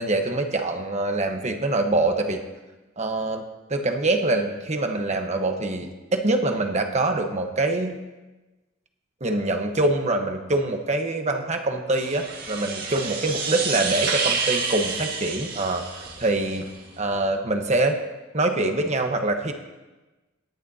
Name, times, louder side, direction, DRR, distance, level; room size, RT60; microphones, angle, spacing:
voice 1, 0.0-2.4 3.0-3.4 3.7-8.0 9.2-16.7 17.0-18.0 18.3-19.5, right 2 dB, 35° right, 5 dB, 1.1 m, -24 dB
sound 1, 11.9-16.6, right 4 dB, 50° right, 1.7 m, -29 dB
18.0 x 10.5 x 2.8 m, 1.1 s
head